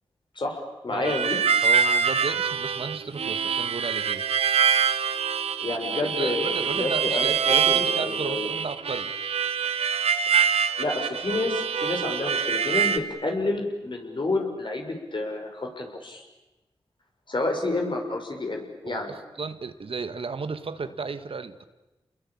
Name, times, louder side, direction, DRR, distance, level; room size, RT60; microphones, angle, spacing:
voice 1, 0.4-1.4 5.6-8.5 10.8-16.2 17.3-19.1, left 2 dB, 50° left, 3 dB, 6.1 m, -29 dB
Harmonica, 1.0-13.0, right 7 dB, 80° right, 1.3 m, -25 dB
voice 2, 1.6-4.2 6.0-9.1 18.9-21.6, right 4 dB, 65° right, 10 dB, 1.6 m, -34 dB
29.0 x 21.5 x 8.7 m, 1.0 s
cardioid pair, 55°, 10 cm